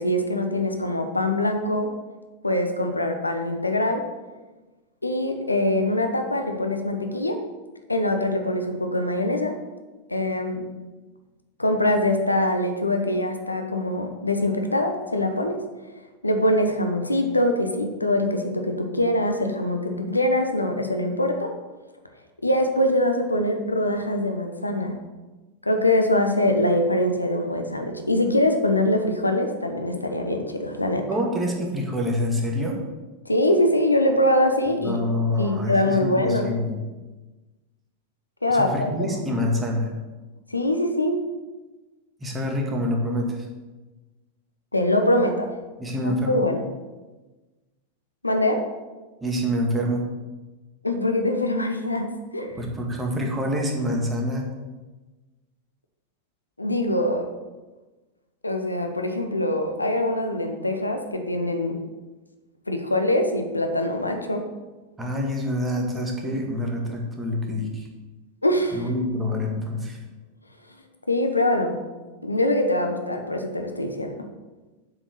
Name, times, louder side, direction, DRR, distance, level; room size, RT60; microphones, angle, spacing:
voice 1, 0.0-1.9 2.4-4.0 5.0-7.4 7.9-9.5 10.1-10.6 11.6-15.6 16.2-21.5 22.4-24.9 25.6-31.1 33.2-35.0 35.4-36.6 38.4-39.4 40.5-41.2 44.7-45.5 46.3-46.7 48.2-48.6 50.8-52.6 56.6-57.3 58.4-61.8 62.7-64.5 68.4-68.9 71.1-71.7 72.2-74.1, left 1 dB, 85° left, 5 dB, 1.0 m, -23 dB
voice 2, 31.1-32.8 34.8-36.8 38.5-39.9 42.2-43.5 45.8-46.5 49.2-50.0 52.5-54.5 65.0-67.9 68.7-70.0, left 1 dB, 15° right, 1 dB, 2.0 m, -26 dB
7.6 x 6.4 x 6.7 m, 1.2 s
figure-of-eight pair, 90°, 0 cm